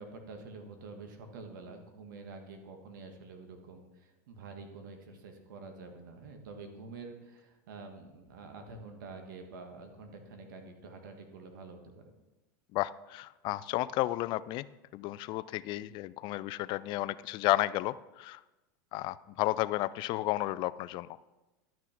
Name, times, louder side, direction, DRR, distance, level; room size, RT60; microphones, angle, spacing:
voice 1, 0.0-12.1, right 3 dB, 80° right, 5 dB, 1.6 m, -47 dB
voice 2, 12.7-14.7 14.9-18.4 18.9-21.1, left 17 dB, 50° left, 17 dB, 0.4 m, -32 dB
11.5 x 6.2 x 4.4 m, 1.1 s
supercardioid pair, 110°, 10 cm